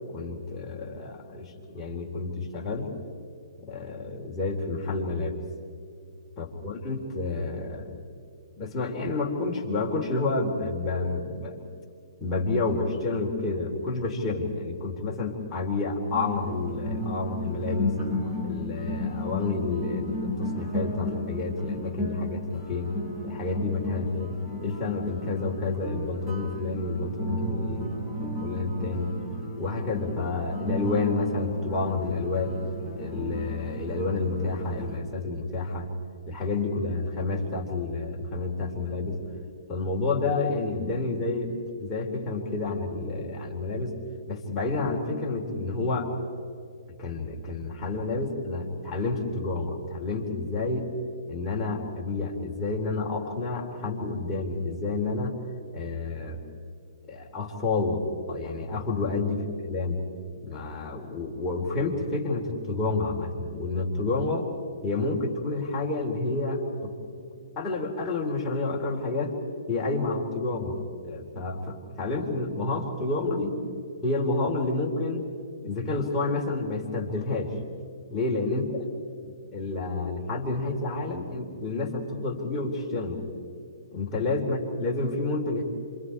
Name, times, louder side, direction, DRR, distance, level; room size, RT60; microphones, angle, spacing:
voice 1, 0.1-2.9 3.6-5.4 6.4-8.0 8.6-11.6 12.2-18.0 18.4-23.0 23.2-24.3 24.6-29.2 29.6-32.6 33.0-35.9 36.3-39.2 39.7-44.0 44.3-46.1 47.0-50.9 51.3-55.4 55.7-56.4 57.1-60.0 60.4-64.5 64.8-66.9 67.6-69.3 69.7-70.8 71.0-73.6 74.0-75.3 75.6-77.5 78.1-78.6 79.5-83.2 83.9-85.6, left 3 dB, 15° left, -3 dB, 3.9 m, -29 dB
sound 1, 16.1-35.0, left 1 dB, 15° right, 4.2 m, -34 dB
28.0 x 27.0 x 4.8 m, 2.4 s
hypercardioid pair, 145°, 3 cm